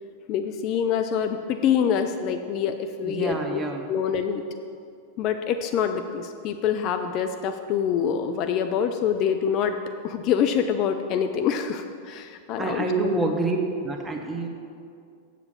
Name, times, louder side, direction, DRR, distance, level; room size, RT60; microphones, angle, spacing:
voice 1, 0.3-3.6 3.9-4.4 5.2-9.8 10.0-13.1, left 8 dB, 40° left, 7 dB, 0.4 m, -25 dB
voice 2, 3.0-3.9 12.6-13.6 13.8-14.5, right 3 dB, 15° right, 3 dB, 1.1 m, -27 dB
7.9 x 7.4 x 5.6 m, 2.4 s
figure-of-eight pair, 90°, 0 cm